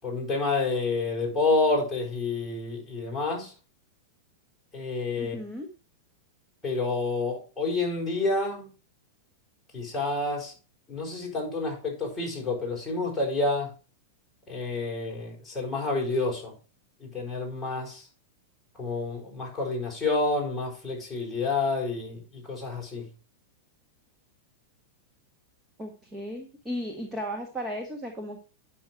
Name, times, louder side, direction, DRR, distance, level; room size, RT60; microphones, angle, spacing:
voice 1, 0.0-3.5 4.7-5.4 6.6-8.7 9.7-10.5 10.9-13.7 14.5-16.5 17.0-18.1 18.8-23.1, left 3 dB, 5° left, 5.3 m, -29 dB
voice 2, 5.2-5.7 25.8-28.4, equal, 10° right, 1.6 m, -35 dB
10.0 x 6.6 x 4.6 m
supercardioid pair, 150°, 0 cm